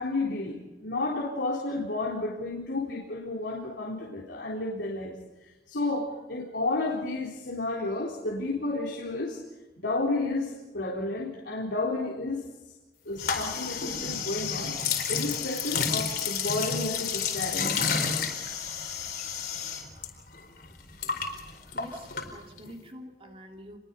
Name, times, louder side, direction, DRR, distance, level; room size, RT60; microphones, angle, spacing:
voice 1, 0.0-9.4 9.8-12.4 13.1-14.7 15.1-17.7, left 2 dB, 85° left, -2 dB, 4.1 m, -31 dB
sound 1, 13.2-20.1 20.3-22.7, left 6 dB, 55° left, 4.4 m, -30 dB
voice 2, 21.7-23.8, equal, 30° right, 2 dB, 3.2 m, -46 dB
29.0 x 22.5 x 5.5 m, 1.1 s
head